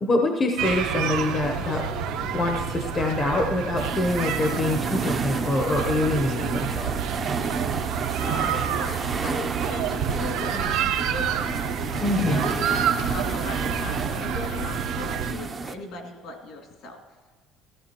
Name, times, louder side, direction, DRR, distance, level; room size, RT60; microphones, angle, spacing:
voice 1, 0.0-1.9 2.3-6.9 12.0-12.4, left 2 dB, 25° left, 3 dB, 0.8 m, -25 dB
sound 1, 0.6-15.3, right 7 dB, 80° right, 0.9 m, -28 dB
sound 2, 3.8-15.7, right 4 dB, 25° right, 0.6 m, -32 dB
voice 2, 7.8-11.5 12.2-12.8 13.1-17.0, left 2 dB, 65° left, 0 dB, 2.3 m, -37 dB
15.0 x 14.5 x 2.9 m, 1.3 s
cardioid pair, 150°, 0 cm